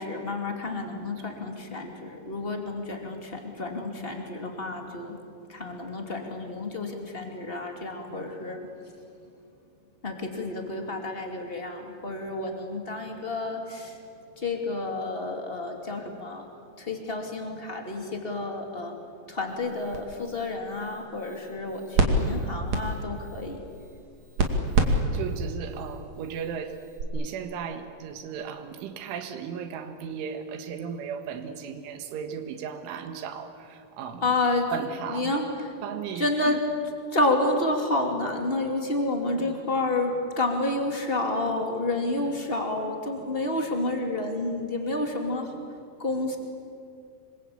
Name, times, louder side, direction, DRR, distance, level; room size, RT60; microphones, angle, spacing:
voice 1, 0.0-5.2 5.5-8.6 10.0-14.0 14.4-16.4 16.8-19.0 19.3-23.6 34.2-34.7 35.1-35.5 36.1-36.6 37.1-45.5 46.0-46.4, left 2 dB, 20° left, 3 dB, 1.6 m, -30 dB
sound 1, 19.5-27.0, right 2 dB, 45° right, 2.9 m, -29 dB
voice 2, 24.7-26.8 27.1-34.4 34.7-35.3 35.8-36.6 39.3-39.6, right 7 dB, 85° right, 7 dB, 4.2 m, -36 dB
26.5 x 24.0 x 8.6 m, 2.4 s
omnidirectional pair, 5.4 m